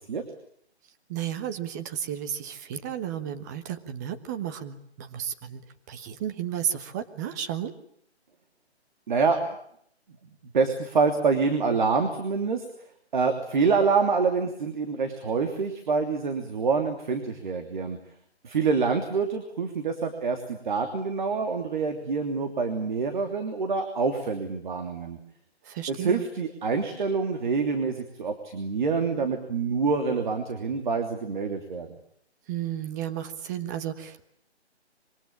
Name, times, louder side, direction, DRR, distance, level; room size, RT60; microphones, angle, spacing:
voice 1, 1.1-5.6 5.9-7.7 25.6-26.3 32.5-34.3, right 9 dB, 15° right, 9 dB, 1.2 m, -33 dB
voice 2, 9.1-9.4 10.5-12.6 13.1-18.0 18.4-25.2 25.9-31.9, right 4 dB, 45° right, 6 dB, 3.1 m, -26 dB
26.0 x 24.0 x 8.7 m, 0.70 s
figure-of-eight pair, 160°, 34 cm